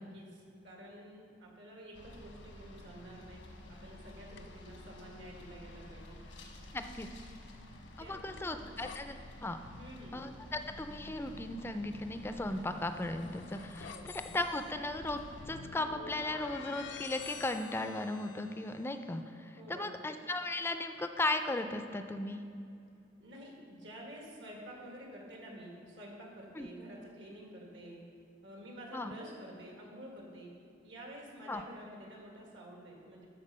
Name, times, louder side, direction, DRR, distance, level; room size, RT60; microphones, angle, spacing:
voice 1, 0.0-3.4 3.7-6.2 8.0-8.5 9.8-10.2 13.9-14.1 19.6-19.9 23.2-28.0 28.4-30.5 30.8-33.3, equal, 75° right, -1 dB, 1.9 m, -50 dB
sound 1, 1.9-15.5, left 1 dB, 90° left, 1.2 m, -51 dB
sound 2, 4.3-4.7 6.6-9.0 12.5-18.9, left 6 dB, 70° left, 0.5 m, -49 dB
voice 2, 6.7-7.1 8.1-9.6 10.1-13.9 14.3-22.4 26.6-26.7 28.9-29.1 31.5-31.6, left 2 dB, 15° left, 8 dB, 0.4 m, -36 dB
12.5 x 4.4 x 5.5 m, 2.4 s
head